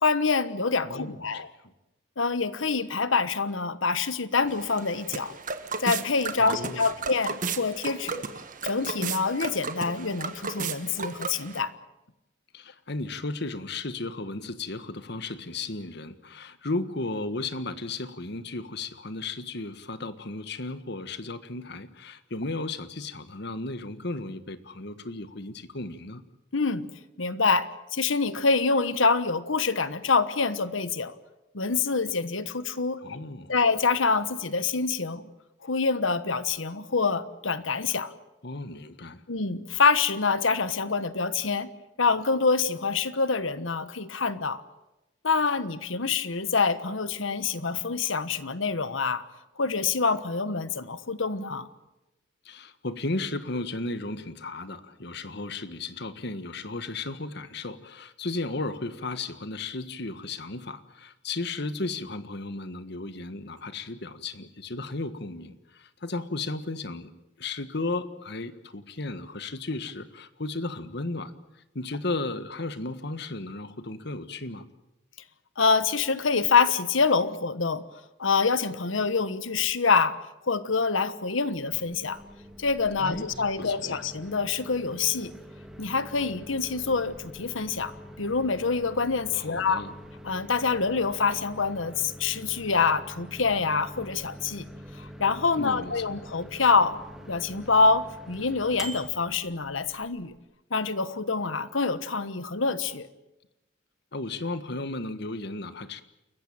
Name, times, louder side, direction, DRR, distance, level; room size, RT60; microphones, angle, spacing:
voice 1, 0.0-1.5 2.2-5.3 5.8-8.2 8.6-11.7 26.5-26.9 27.2-31.1 31.5-33.2 33.5-35.3 35.6-38.1 39.3-41.7 42.0-44.6 45.2-49.2 49.6-51.7 75.6-77.8 78.2-80.2 80.5-82.2 82.6-85.3 85.8-87.9 88.2-89.8 90.2-94.7 95.0-97.0 97.2-100.3 100.7-103.1, left 4 dB, 90° left, 14 dB, 1.3 m, -26 dB
voice 2, 0.8-1.4 6.4-6.9 12.5-26.2 33.0-33.5 38.4-39.2 52.4-74.6 83.0-83.3 83.6-84.0 89.3-89.9 95.6-96.0 104.1-106.0, left 2 dB, 60° left, 12 dB, 1.6 m, -35 dB
sound 1, 4.5-11.6, right 4 dB, 45° right, 1.6 m, -34 dB
Microwave oven, 81.6-100.4, equal, ahead, 2.6 m, -45 dB
29.0 x 15.0 x 9.1 m, 0.94 s
head